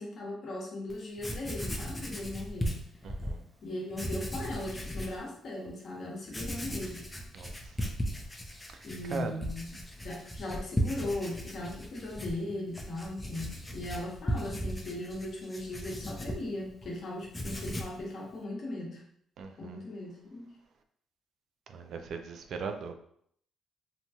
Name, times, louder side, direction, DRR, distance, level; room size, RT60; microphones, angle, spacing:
voice 1, 0.0-2.7 3.6-7.1 8.8-19.0 19.6-20.5, left 1 dB, 60° left, -2 dB, 0.9 m, -38 dB
Writing, 0.9-1.0 1.2-3.4 3.9-5.2 5.7-5.8 6.3-16.9 17.2-18.0, equal, 15° left, 0.4 m, -37 dB
voice 2, 3.0-3.4 7.3-7.5 9.1-9.3 19.4-19.8 21.7-22.9, right 5 dB, 65° right, 6 dB, 0.3 m, -38 dB
2.9 x 2.2 x 2.7 m, 0.67 s
cardioid pair, 90°, 0 cm